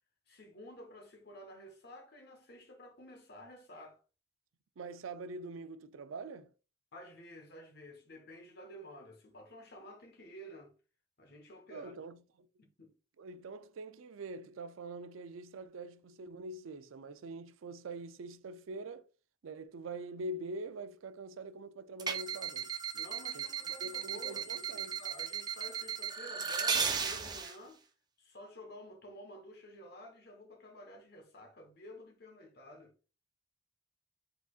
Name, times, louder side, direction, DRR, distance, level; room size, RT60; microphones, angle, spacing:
voice 1, 0.3-4.0 6.9-10.7 11.2-11.9 12.6-12.9 22.9-27.8 28.2-32.9, equal, 55° left, 1.2 m, -52 dB
voice 2, 4.8-6.5 11.7-12.5 13.2-19.1 19.4-22.7 23.3-23.4 23.8-25.0, right 2 dB, 85° right, 0.4 m, -44 dB
sound 1, 22.0-27.6, right 6 dB, 20° right, 0.5 m, -36 dB
4.9 x 4.0 x 2.4 m
head